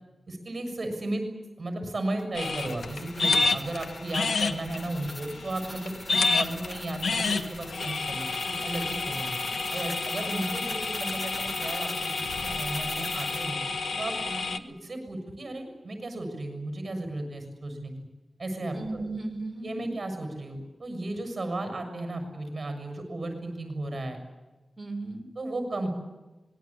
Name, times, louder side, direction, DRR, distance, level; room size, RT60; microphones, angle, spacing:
voice 1, 0.3-1.2 1.6-9.4 9.7-13.6 14.0-14.1 14.7-17.9 18.4-18.8 19.6-24.2 25.3-25.9, right 2 dB, 35° right, 5 dB, 6.8 m, -34 dB
sound 1, 2.2-13.5, equal, 10° left, 1.7 m, -43 dB
sound 2, 2.3-14.6, left 4 dB, 80° left, 1.5 m, -30 dB
voice 2, 14.2-14.6 18.7-19.9 24.8-25.2, right 2 dB, 10° right, 1 dB, 5.4 m, -36 dB
25.5 x 21.0 x 8.8 m, 1.1 s
wide cardioid pair, 145°, 0 cm